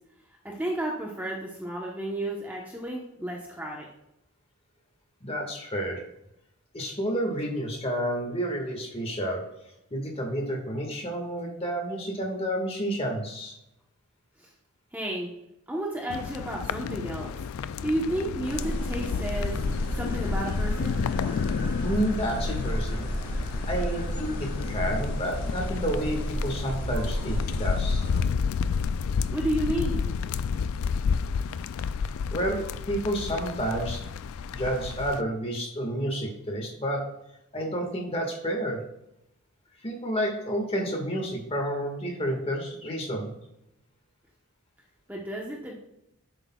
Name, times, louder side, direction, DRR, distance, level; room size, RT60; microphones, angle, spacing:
voice 1, 0.4-3.9 14.4-14.5 14.9-15.3 15.7-17.3 17.8-19.6 19.9-21.0 29.3-30.0 45.1-45.7, right 1 dB, 10° right, -2 dB, 1.0 m, -32 dB
voice 2, 5.2-6.0 6.7-9.4 9.9-13.5 21.8-23.1 23.7-28.1 32.3-34.1 34.5-37.0 37.5-38.8 39.8-43.3, equal, 25° left, 1 dB, 1.7 m, -30 dB
sound 1, 16.1-35.2, left 6 dB, 70° left, 0.3 m, -31 dB
sound 2, 18.4-28.2, equal, 45° left, 2.2 m, -32 dB
10.5 x 8.2 x 2.3 m, 0.84 s
head